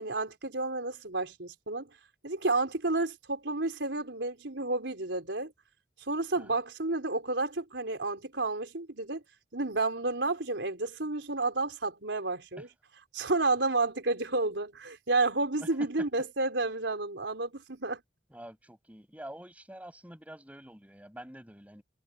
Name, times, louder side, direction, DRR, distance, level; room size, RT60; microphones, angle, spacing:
voice 1, 0.0-1.9 2.2-5.5 6.1-9.2 9.5-12.7 13.1-18.0, right 3 dB, 85° right, 4.3 m, -31 dB
voice 2, 18.3-21.8, right 1 dB, 10° right, 5.7 m, -47 dB
head